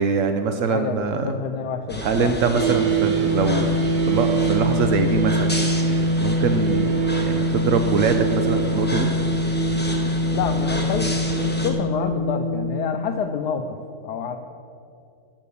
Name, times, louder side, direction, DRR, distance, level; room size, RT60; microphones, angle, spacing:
voice 1, 0.0-1.3 2.0-3.8 4.1-5.6 6.2-9.1, right 5 dB, 75° right, 7 dB, 0.7 m, -23 dB
voice 2, 0.7-2.3 2.7-2.8 10.3-13.8 14.0-14.4, left 7 dB, 70° left, 6 dB, 1.0 m, -28 dB
sound 1, 1.9-11.7, equal, 10° left, 0.7 m, -31 dB
sound 2, 2.5-12.9, right 1 dB, 60° right, 1.6 m, -23 dB
13.0 x 6.0 x 6.9 m, 2.5 s
omnidirectional pair, 2.0 m